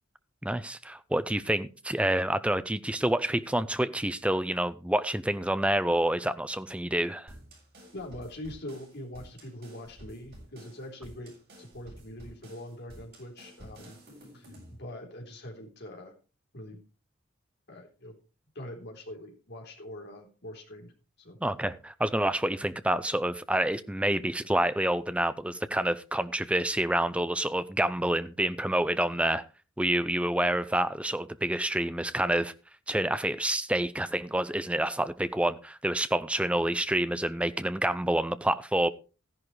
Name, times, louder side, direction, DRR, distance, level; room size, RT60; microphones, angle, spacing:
voice 1, 0.4-7.3 21.4-29.4 29.8-32.5 32.9-38.9, right 1 dB, 5° right, 0.6 m, -28 dB
sound 1, 7.3-14.8, equal, 45° right, 7.4 m, -51 dB
voice 2, 7.9-11.3 11.6-14.0 14.3-16.1 16.5-16.8 17.7-18.2 18.6-20.9 21.2-21.4, left 1 dB, 50° left, 3.7 m, -43 dB
14.0 x 11.0 x 3.2 m
head